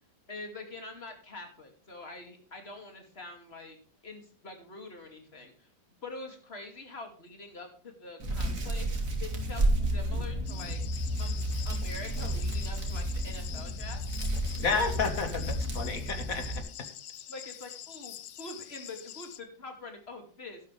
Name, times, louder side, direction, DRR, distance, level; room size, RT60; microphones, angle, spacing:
voice 1, 0.3-3.8 4.0-5.7 6.0-10.8 11.2-14.0 17.3-20.6, left 2 dB, 35° left, 5 dB, 2.6 m, -45 dB
Hands, 8.2-16.6, right 1 dB, 50° right, 2.6 m, -31 dB
sound 1, 10.5-19.4, left 11 dB, 75° left, 1.5 m, -45 dB
voice 2, 14.6-16.6, left 4 dB, 50° left, 8 dB, 1.9 m, -31 dB
12.5 x 11.5 x 3.3 m, 0.43 s
omnidirectional pair, 1.9 m